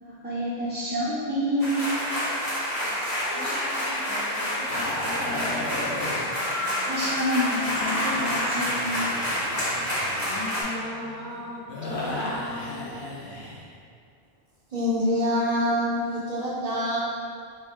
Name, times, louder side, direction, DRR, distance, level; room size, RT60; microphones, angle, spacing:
voice 1, 0.0-1.8 6.9-9.2, left 1 dB, 20° right, -9 dB, 0.3 m, -28 dB
sound 1, 1.6-10.6, equal, 40° left, 1.4 m, -28 dB
voice 2, 3.3-5.8 10.3-12.9, left 1 dB, 25° left, -7 dB, 0.6 m, -38 dB
sound 2, 4.7-7.1 7.6-13.7, left 1 dB, 85° left, 1.1 m, -35 dB
voice 3, 14.7-17.0, equal, 45° right, -5 dB, 0.7 m, -25 dB
3.5 x 3.1 x 4.3 m, 2.2 s
omnidirectional pair, 1.1 m